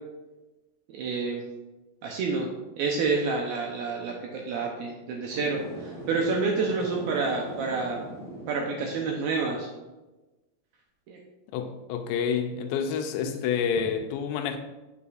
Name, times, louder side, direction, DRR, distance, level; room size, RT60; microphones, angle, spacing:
voice 1, 0.9-1.5 2.0-2.5 2.8-8.0 8.5-9.7 11.1-11.2 13.2-13.4, right 4 dB, 75° right, 2.3 m, -28 dB
sound 1, 5.3-9.5, right 1 dB, ahead, 0.8 m, -41 dB
voice 2, 11.5-14.6, left 7 dB, 85° left, 2.9 m, -28 dB
8.4 x 7.5 x 2.5 m
omnidirectional pair, 5.0 m